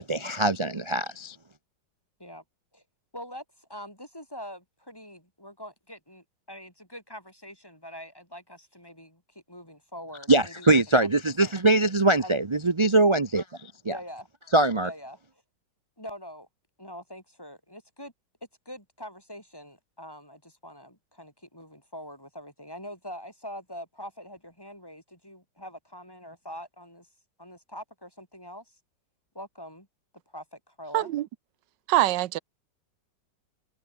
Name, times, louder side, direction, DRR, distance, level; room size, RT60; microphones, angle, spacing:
voice 1, 0.0-1.4 10.3-14.0 14.5-14.9, right 2 dB, 40° right, 0.4 m, -23 dB
voice 2, 3.1-11.1 11.4-11.5 12.2-12.3 13.9-14.3 14.8-15.4 16.0-16.5 16.8-18.1 18.6-27.1 27.4-28.7 29.3-29.9 30.3-31.1, equal, 10° left, 6.1 m, -44 dB
voice 3, 30.9-31.3 31.9-32.4, right 15 dB, 80° right, 1.4 m, -23 dB
omnidirectional pair, 2.0 m